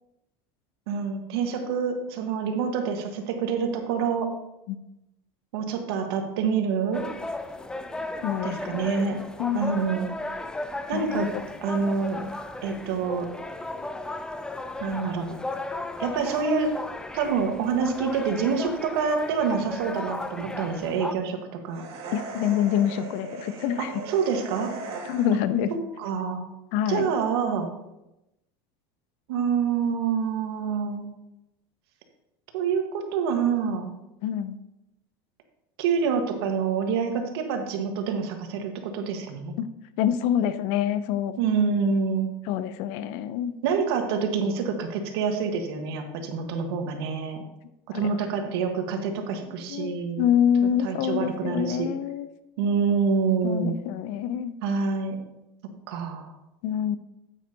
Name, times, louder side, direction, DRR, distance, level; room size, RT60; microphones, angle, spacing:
voice 1, 0.9-4.3 5.5-7.1 8.4-9.2 9.5-10.1 10.9-11.3 11.6-12.2 12.6-13.3 14.8-15.4 16.0-16.7 17.1-21.4 21.6-21.8 23.8-24.7 26.0-26.4 26.9-27.7 29.3-31.1 32.5-33.9 35.8-39.5 41.4-42.3 43.6-47.4 47.9-50.3 50.8-51.9 52.6-53.8 54.6-55.2 55.9-56.3, right 6 dB, 80° right, 4 dB, 1.4 m, -26 dB
sound 1, 6.9-21.1, left 2 dB, 5° left, 0.4 m, -35 dB
voice 2, 8.2-8.8 9.4-9.6 10.9-11.4 22.1-24.0 25.0-25.7 26.7-27.1 34.2-34.6 39.6-39.7 40.0-41.3 41.8-41.9 42.5-43.5 47.9-48.1 49.7-52.3 53.4-54.5 56.6-57.0, left 9 dB, 65° left, 13 dB, 0.6 m, -26 dB
sound 2, 21.7-25.6, right 3 dB, 50° right, 2.1 m, -38 dB
9.0 x 8.8 x 2.8 m, 0.91 s
supercardioid pair, 130°, 13 cm